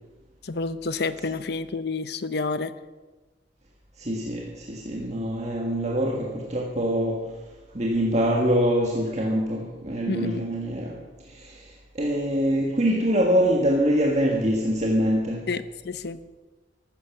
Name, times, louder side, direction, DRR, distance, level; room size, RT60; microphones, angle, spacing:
voice 1, 0.4-2.7 10.1-10.5 15.5-16.2, left 3 dB, 60° left, 0.8 m, -29 dB
voice 2, 4.0-7.4 7.7-15.5, equal, 40° right, 1.6 m, -24 dB
14.5 x 13.0 x 6.0 m
head